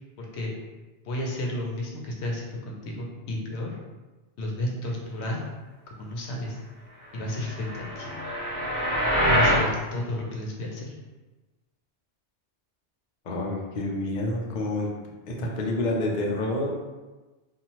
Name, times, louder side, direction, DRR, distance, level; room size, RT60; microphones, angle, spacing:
voice 1, 0.2-0.5 1.0-3.7 4.4-5.4 6.0-6.6 7.1-8.1 9.3-10.9, left 1 dB, 70° left, -1 dB, 0.9 m, -32 dB
sound 1, 7.4-9.7, equal, 10° left, 1.3 m, -24 dB
voice 2, 13.2-14.9 15.3-16.7, left 1 dB, 55° left, -1 dB, 0.5 m, -28 dB
2.7 x 2.4 x 2.9 m, 1.2 s
omnidirectional pair, 1.2 m